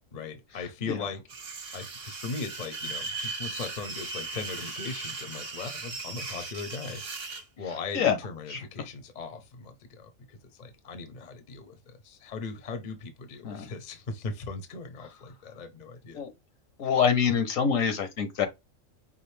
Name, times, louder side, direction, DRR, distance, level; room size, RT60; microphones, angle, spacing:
voice 1, 0.1-1.2 1.7-16.2, left 4 dB, 35° left, 0.8 m, -39 dB
sound 1, 1.3-7.4, right 3 dB, 50° right, 0.9 m, -37 dB
voice 2, 16.8-18.5, left 7 dB, 70° left, 1.4 m, -25 dB
5.5 x 2.5 x 3.2 m
omnidirectional pair, 1.4 m